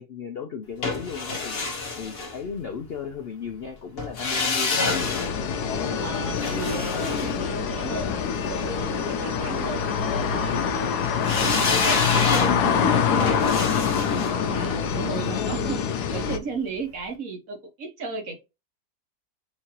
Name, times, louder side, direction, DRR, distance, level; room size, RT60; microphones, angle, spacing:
voice 1, 0.0-1.6 2.0-5.3, left 6 dB, 60° left, 0.6 m, -35 dB
sound 1, 0.8-2.9 4.0-8.2 11.2-16.2 16.5-16.6, left 3 dB, 45° left, 1.2 m, -29 dB
sound 2, 4.9-16.4, left 7 dB, 90° left, 1.2 m, -25 dB
voice 2, 6.0-10.8 11.4-18.4, right 4 dB, 60° right, 1.5 m, -35 dB
5.7 x 2.8 x 2.9 m
omnidirectional pair, 1.6 m